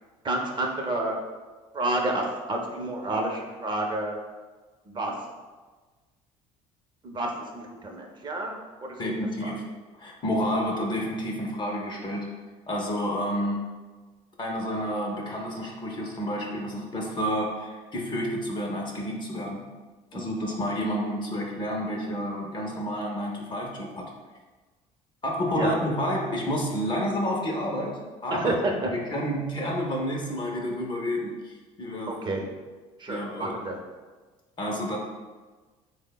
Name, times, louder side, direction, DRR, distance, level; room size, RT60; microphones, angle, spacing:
voice 1, 0.2-1.2 1.7-4.2 4.8-5.2 7.0-9.1 9.4-9.5 20.1-20.3 25.5-25.7 28.3-28.9 32.1-32.4 33.0-33.8, right 2 dB, 30° right, 1 dB, 0.5 m, -30 dB
voice 2, 9.0-9.7 10.0-12.3 12.7-13.7 14.4-19.7 20.1-24.0 25.2-28.6 29.1-32.1 33.1-33.6 34.6-35.0, equal, 30° left, -1 dB, 0.5 m, -30 dB
3.2 x 2.0 x 2.2 m, 1.3 s
supercardioid pair, 75°, 16 cm